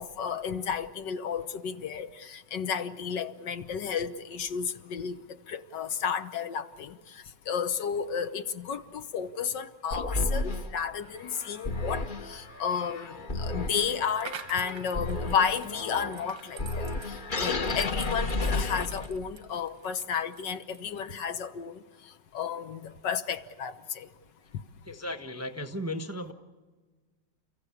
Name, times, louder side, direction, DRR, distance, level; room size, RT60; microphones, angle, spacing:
voice 1, 0.0-5.2 5.5-21.8 22.3-24.1, left 7 dB, 70° left, 1.6 m, -32 dB
sound 1, 9.9-19.3, left 2 dB, 35° left, 1.0 m, -33 dB
sound 2, 14.0-20.9, right 8 dB, 85° right, 2.0 m, -47 dB
voice 2, 24.8-26.3, left 1 dB, 10° right, 0.9 m, -35 dB
30.0 x 15.5 x 8.5 m
omnidirectional pair, 2.0 m